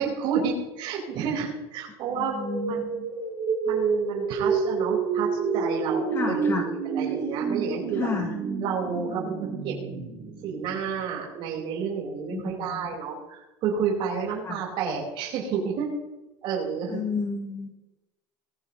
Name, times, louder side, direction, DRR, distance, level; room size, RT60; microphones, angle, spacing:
voice 1, 0.0-2.4 2.7-2.9 3.6-6.5 6.8-8.1 8.6-9.7 10.4-15.9 16.4-17.0, right 6 dB, 50° right, -3 dB, 4.8 m, -30 dB
voice 2, 2.1-3.1 6.1-6.6 8.0-8.3 12.3-12.9 14.4-14.6 16.9-17.7, left 5 dB, 25° left, 3 dB, 1.5 m, -31 dB
sound 1, 2.1-11.0, right 5 dB, 30° right, 5.0 m, -29 dB
20.5 x 15.0 x 3.1 m, 1.0 s
cardioid pair, 155°, 11 cm